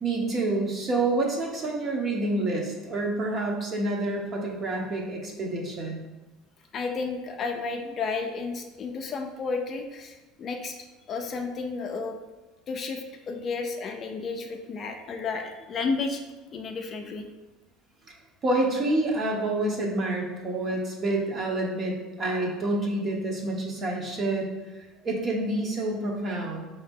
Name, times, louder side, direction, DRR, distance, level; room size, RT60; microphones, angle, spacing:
voice 1, 0.0-6.0 18.4-24.5 24.7-26.7, right 2 dB, 30° right, -1 dB, 0.9 m, -28 dB
voice 2, 6.7-10.8 11.1-12.2 12.7-16.2 16.5-17.3, left 4 dB, 35° left, 4 dB, 0.4 m, -32 dB
5.3 x 2.8 x 3.5 m, 1.1 s
cardioid pair, 130°, 0 cm